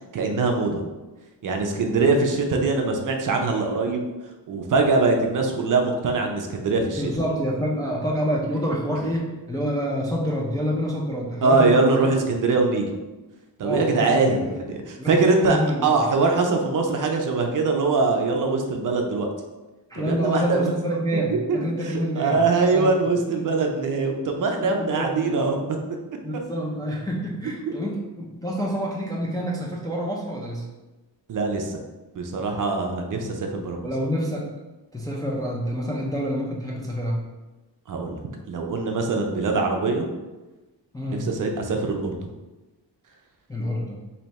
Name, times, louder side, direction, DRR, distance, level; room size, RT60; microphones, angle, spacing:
voice 1, 0.1-0.8 1.4-4.1 4.5-7.0 11.4-12.9 13.6-15.6 15.8-19.3 19.9-20.7 21.3-21.6 22.2-25.8 27.7-27.8 31.3-31.8 32.2-33.9 37.9-38.2 38.5-40.1 41.2-42.3, right 3 dB, 50° right, 3 dB, 0.5 m, -22 dB
voice 2, 7.0-12.1 13.6-14.6 15.0-15.9 19.9-22.5 22.7-22.9 24.6-25.3 26.2-30.7 33.8-34.5 34.9-37.3 40.9-41.3 43.5-44.0, equal, 10° left, -3 dB, 0.3 m, -27 dB
3.3 x 2.7 x 4.0 m, 1.1 s
wide cardioid pair, 170°, 43 cm